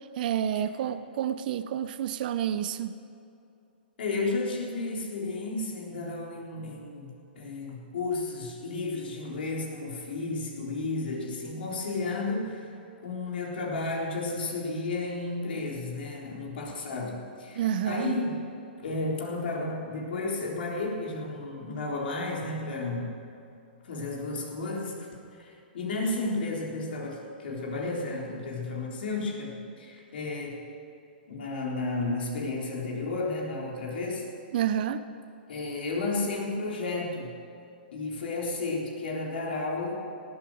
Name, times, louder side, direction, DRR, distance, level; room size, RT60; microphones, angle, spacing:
voice 1, 0.2-3.0 17.5-18.1 34.5-35.0, right 10 dB, 55° right, 12 dB, 0.6 m, -29 dB
voice 2, 4.0-12.7 13.0-18.4 18.8-23.1 23.8-25.1 25.4-30.6 31.3-34.3 35.5-37.3 37.9-40.0, left 3 dB, 70° left, -2 dB, 3.8 m, -32 dB
18.0 x 8.3 x 8.0 m, 2.7 s
hypercardioid pair, 130°, 6 cm